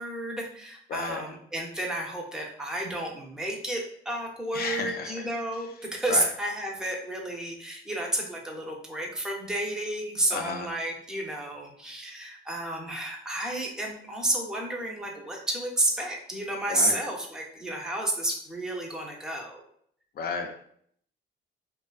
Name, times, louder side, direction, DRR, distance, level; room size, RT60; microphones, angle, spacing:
voice 1, 0.0-3.8 4.1-19.6, right 1 dB, 5° right, -1 dB, 0.5 m, -31 dB
voice 2, 0.9-1.2 4.5-5.2 6.1-6.3 10.3-10.7 16.7-17.0 20.2-20.5, left 5 dB, 50° left, 4 dB, 0.4 m, -32 dB
2.3 x 2.3 x 2.3 m, 0.65 s
cardioid pair, 90°, 20 cm